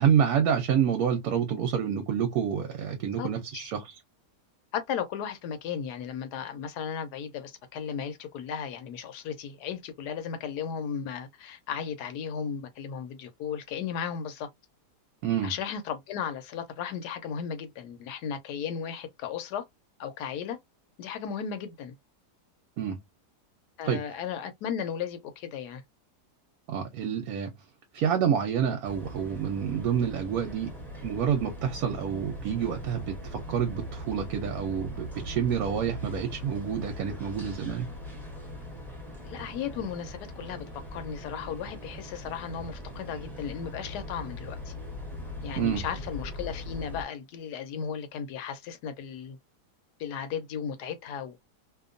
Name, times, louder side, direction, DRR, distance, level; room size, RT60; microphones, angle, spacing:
voice 1, 0.0-4.0 15.2-15.5 22.8-23.0 23.8-24.0 26.7-27.5 27.9-30.7 31.0-37.9 45.6-45.8, right 8 dB, 70° right, 1.0 m, -28 dB
voice 2, 4.7-14.5 15.4-19.7 20.0-20.6 21.0-21.9 23.8-25.8 39.2-40.7 40.9-44.7 45.4-49.4 50.0-51.5, left 7 dB, 75° left, 1.2 m, -35 dB
sound 1, 28.8-47.0, left 1 dB, ahead, 0.7 m, -40 dB
2.8 x 2.2 x 2.5 m
omnidirectional pair, 1.8 m